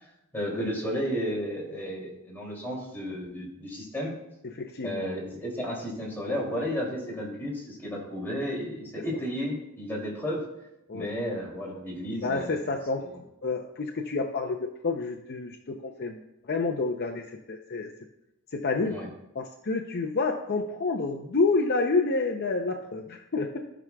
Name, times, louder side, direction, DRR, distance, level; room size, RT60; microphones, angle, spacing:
voice 1, 0.3-4.1 4.8-10.4 10.9-12.7 18.9-19.1, equal, 10° left, -4 dB, 2.7 m, -33 dB
voice 2, 4.4-5.0 10.9-11.1 12.2-16.2 16.5-17.9 18.5-19.0 19.3-23.6, left 3 dB, 50° left, 3 dB, 0.6 m, -29 dB
17.0 x 6.0 x 2.3 m, 0.90 s
head